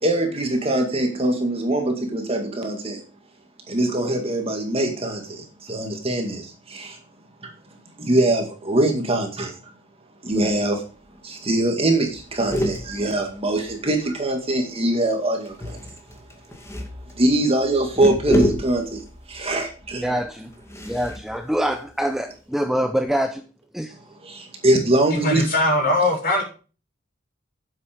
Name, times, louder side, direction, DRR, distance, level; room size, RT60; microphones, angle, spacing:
voice 1, 0.0-3.0 3.7-7.0 8.0-9.5 10.2-10.8 11.2-15.8 17.1-19.0 19.3-20.1 24.2-25.5, right 1 dB, 30° right, 2.1 m, -23 dB
sound 1, 10.3-10.8 11.1-11.2 11.4-11.7 12.0-14.3 15.4-22.4, equal, 15° left, 2.1 m, -30 dB
voice 2, 20.0-20.5 20.9-23.4 23.7-24.0, equal, ahead, 0.7 m, -25 dB
voice 3, 25.1-26.4, left 1 dB, 50° left, 6.6 m, -20 dB
9.6 x 7.7 x 5.2 m
head